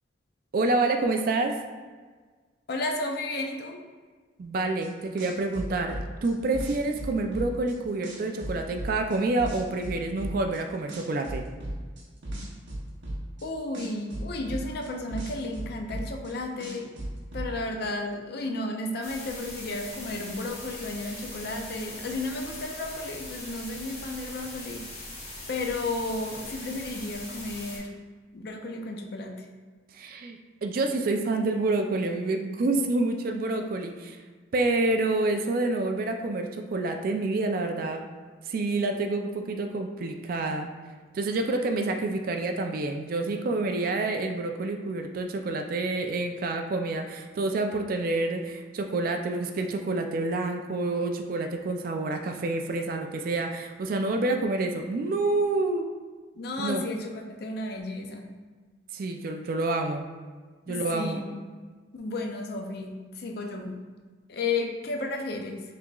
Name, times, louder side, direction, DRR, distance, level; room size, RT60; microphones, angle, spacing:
voice 1, 0.5-1.5 4.4-11.4 29.9-34.2 34.5-38.0 38.4-40.7 41.1-55.9 56.6-56.8 58.9-60.1 60.7-61.2, right 2 dB, 45° right, 4 dB, 0.3 m, -28 dB
voice 2, 2.7-3.8 13.4-16.9 17.3-24.8 25.5-27.9 28.3-29.4 56.4-58.3 60.7-61.4 61.9-63.8 64.3-65.6, left 2 dB, 50° left, 2 dB, 0.5 m, -33 dB
sound 1, 4.8-4.9 5.2-7.7 8.0-10.6 10.9-13.4 13.7-16.3 16.6-17.5, right 1 dB, 70° right, 0.9 m, -35 dB
sound 2, 19.0-27.8, left 2 dB, 35° left, 1.1 m, -41 dB
5.8 x 2.9 x 2.3 m, 1.4 s
head